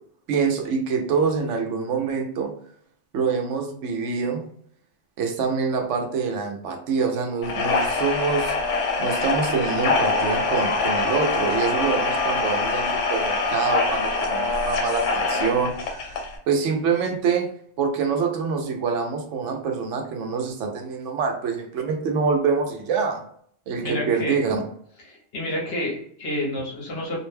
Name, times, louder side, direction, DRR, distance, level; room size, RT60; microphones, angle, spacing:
voice 1, 0.3-2.5 3.1-4.4 5.2-8.6 9.0-16.2 16.5-17.5 17.8-23.2 23.7-24.6, right 5 dB, 85° right, 4 dB, 0.9 m, -25 dB
sound 1, 7.4-16.4, left 3 dB, 90° left, 0.9 m, -24 dB
voice 2, 23.8-24.4 25.0-27.2, left 1 dB, 60° left, -2 dB, 1.0 m, -29 dB
2.6 x 2.1 x 3.1 m, 0.64 s
omnidirectional pair, 1.2 m